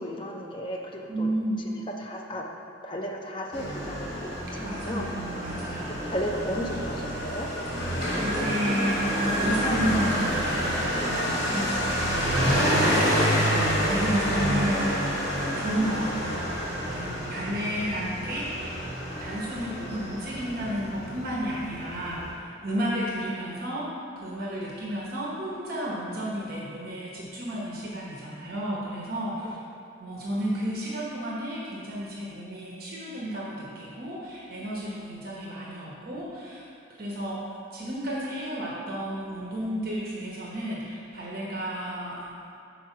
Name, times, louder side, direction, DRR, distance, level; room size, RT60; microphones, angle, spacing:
voice 1, 0.0-1.3 1.6-2.5 2.8-5.1 5.9-7.5 12.1-12.3 13.5-13.7 29.4-29.5, equal, 25° left, 0 dB, 0.5 m, -35 dB
voice 2, 1.1-1.6 4.6-5.9 8.2-13.0 13.4-15.2 15.6-16.5 16.8-18.9 19.2-23.9 24.2-29.6 30.0-36.6 37.0-37.4 37.7-42.3, equal, 50° right, -4 dB, 0.9 m, -32 dB
Motorcycle, 3.5-22.3, equal, 75° left, 1.8 m, -28 dB
6.2 x 4.6 x 5.8 m, 2.5 s
head